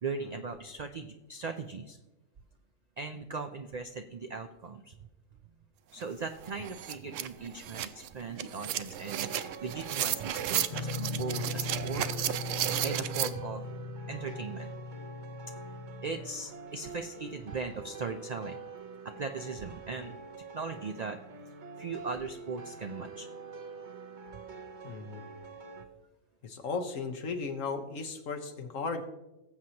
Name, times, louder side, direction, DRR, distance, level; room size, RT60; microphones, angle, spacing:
voice 1, 0.0-2.0 3.0-5.0 5.9-9.3 9.6-12.0 12.8-13.6 14.1-14.7 16.0-18.6 19.2-21.2 21.8-23.3 23.8-23.9, right 4 dB, 55° right, 6 dB, 0.4 m, -38 dB
sound 1, 6.0-6.1 6.4-13.3, right 11 dB, 75° right, 0.9 m, -34 dB
sound 2, 9.2-25.8, right 4 dB, 40° right, 1.0 m, -46 dB
sound 3, 10.7-16.3, left 4 dB, 40° left, 0.6 m, -39 dB
voice 2, 24.8-25.2 26.4-29.0, left 4 dB, 75° left, 5 dB, 1.5 m, -36 dB
19.0 x 7.7 x 2.9 m, 1.0 s
omnidirectional pair, 1.4 m